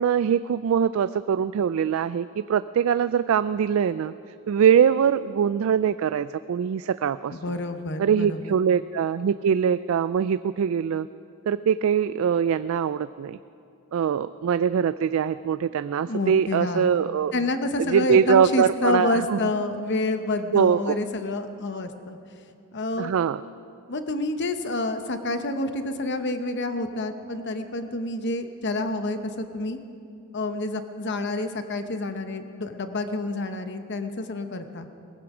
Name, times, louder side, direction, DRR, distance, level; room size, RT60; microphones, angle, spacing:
voice 1, 0.0-4.1 4.5-7.4 8.0-11.1 11.5-13.4 13.9-17.3 17.8-19.4 20.5-21.0 23.0-23.4, right 7 dB, 70° right, 14 dB, 0.3 m, -22 dB
voice 2, 7.3-8.5 16.0-16.9 17.3-22.2 22.7-23.1 23.9-29.8 30.3-34.9, left 2 dB, 55° left, 8 dB, 1.0 m, -28 dB
18.5 x 15.5 x 4.9 m, 2.5 s
head